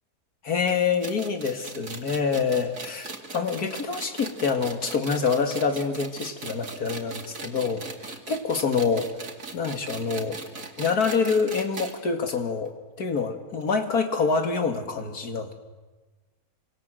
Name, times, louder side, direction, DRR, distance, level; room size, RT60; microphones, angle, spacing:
voice 1, 0.4-9.1 9.5-10.4 10.8-15.5, left 5 dB, 90° left, 6 dB, 2.6 m, -26 dB
sound 1, 0.7-12.0 12.3-12.4 12.6-12.7 13.6-13.7, right 3 dB, 60° right, 2.8 m, -39 dB
26.5 x 25.0 x 7.7 m, 1.3 s
omnidirectional pair, 1.6 m